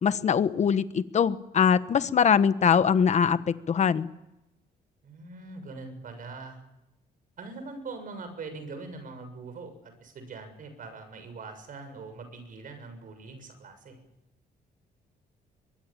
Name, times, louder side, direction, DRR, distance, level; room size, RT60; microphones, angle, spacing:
voice 1, 0.0-4.1, left 7 dB, 40° left, 13 dB, 1.3 m, -23 dB
voice 2, 5.0-6.6 7.4-14.0, right 3 dB, 50° right, 8 dB, 6.8 m, -42 dB
24.0 x 22.0 x 8.9 m, 0.91 s
cardioid pair, 140°, 18 cm